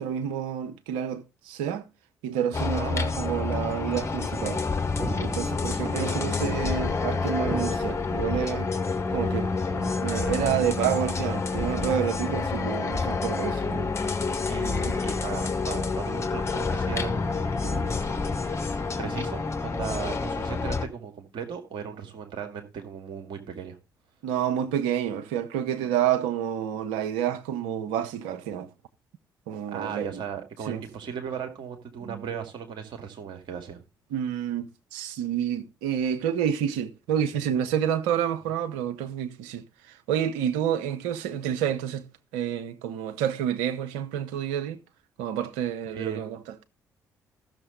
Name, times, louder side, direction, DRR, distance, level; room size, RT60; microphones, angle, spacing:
voice 1, 0.0-1.9 2.2-4.6 5.2-8.7 9.1-9.5 10.0-13.9 14.8-15.0 24.2-28.7 29.5-30.2 30.7-30.8 32.0-32.3 34.1-42.1 42.3-44.8 45.2-46.4, right 9 dB, 75° right, 0.9 m, -29 dB
sound 1, 2.5-20.9, left 4 dB, 30° left, 1.8 m, -28 dB
sound 2, 5.0-5.8 7.5-8.2 9.7-10.4 11.8-12.4 14.0-14.1, right 1 dB, 25° right, 3.7 m, -37 dB
voice 2, 5.8-6.2 14.5-17.9 18.5-18.7 19.0-23.8 29.7-33.8 45.9-46.2, right 7 dB, 60° right, 2.2 m, -37 dB
14.0 x 6.7 x 3.9 m
hypercardioid pair, 45°, 9 cm